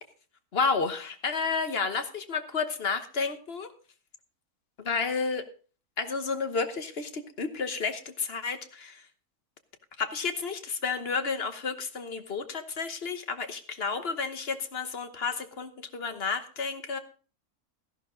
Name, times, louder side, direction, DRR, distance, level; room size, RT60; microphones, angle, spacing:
voice 1, 0.5-3.7 4.8-5.4 6.0-9.0 10.0-17.0, left 5 dB, 45° left, 9 dB, 1.2 m, -31 dB
14.0 x 11.5 x 3.8 m, 0.38 s
omnidirectional pair, 1.6 m